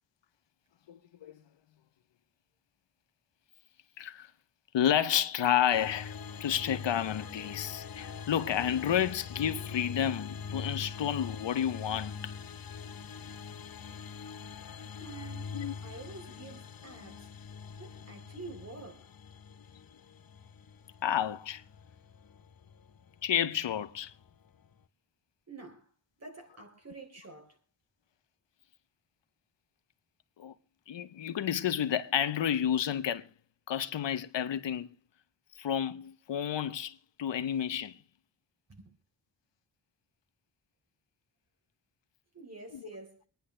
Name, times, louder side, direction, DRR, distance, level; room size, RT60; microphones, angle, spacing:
voice 1, 0.9-1.4 4.0-4.3 4.7-12.3 15.5-15.7 21.0-21.6 23.2-24.1 30.4-30.5 30.9-33.3 33.7-34.9 35.6-38.0 42.7-42.9, left 10 dB, 80° left, 0.9 m, -31 dB
sound 1, 5.7-24.8, left 6 dB, 55° left, 0.9 m, -44 dB
voice 2, 15.0-15.5 15.8-17.3 17.8-19.1 25.5-25.9 26.2-27.6 38.7-38.9 42.3-43.2, right 3 dB, 35° right, 3.8 m, -48 dB
26.5 x 10.0 x 3.3 m
wide cardioid pair, 110°, 43 cm